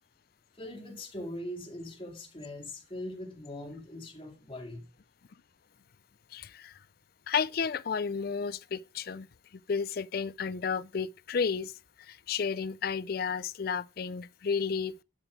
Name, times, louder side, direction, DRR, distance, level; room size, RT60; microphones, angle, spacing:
voice 1, 0.5-4.9, left 1 dB, 25° left, 2.2 m, -41 dB
voice 2, 6.3-6.8 7.3-9.3 9.7-11.7 12.1-15.0, left 6 dB, 50° left, 0.4 m, -32 dB
11.5 x 6.0 x 5.0 m
head